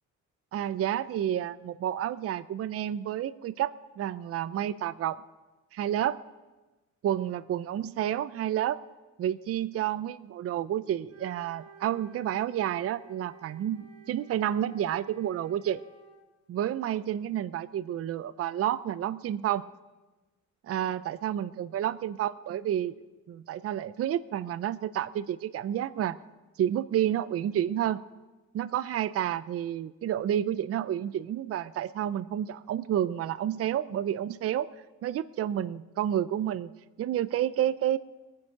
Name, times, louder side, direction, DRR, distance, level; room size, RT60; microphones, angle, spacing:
voice 1, 0.5-5.2 5.7-6.2 7.0-8.8 9.2-15.8 16.5-19.7 20.6-23.0 23.3-26.2 26.6-28.0 28.5-34.7 35.0-36.7 37.0-38.0, right 11 dB, 50° right, 15 dB, 0.5 m, -30 dB
Wind instrument woodwind instrument, 11.1-16.3, right 7 dB, 80° right, 2.5 m, -53 dB
20.0 x 9.6 x 5.8 m, 1.2 s
cardioid pair, 90°, 30 cm